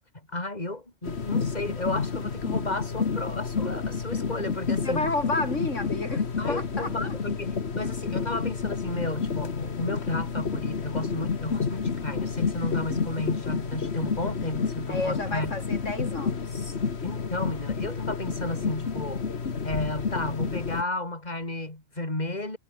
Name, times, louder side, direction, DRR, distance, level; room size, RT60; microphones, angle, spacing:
voice 1, 0.3-5.1 6.4-15.5 17.0-19.2 19.6-22.6, left 2 dB, 35° left, 4.5 m, -33 dB
sound 1, 1.0-20.8, left 5 dB, 60° left, 1.8 m, -30 dB
voice 2, 4.8-7.1 14.9-16.7, left 2 dB, 85° left, 4.6 m, -31 dB
omnidirectional pair, 1.2 m